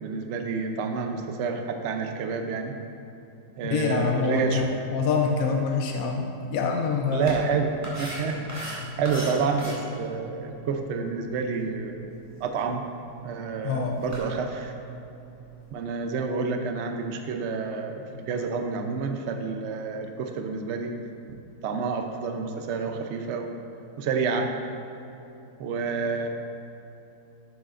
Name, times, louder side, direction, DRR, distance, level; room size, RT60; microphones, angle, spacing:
voice 1, 0.0-2.8 3.6-4.6 7.1-12.1 12.4-12.9 13.2-14.7 15.7-21.0 21.3-23.6 24.0-24.5 25.6-26.3, right 5 dB, 65° right, 4 dB, 0.7 m, -29 dB
voice 2, 3.6-7.4 8.8-8.9 13.6-14.0, left 5 dB, 70° left, 2 dB, 0.9 m, -26 dB
sound 1, 7.2-15.7, right 2 dB, 10° right, 1.8 m, -41 dB
11.0 x 8.1 x 2.5 m, 2.9 s
omnidirectional pair, 1.9 m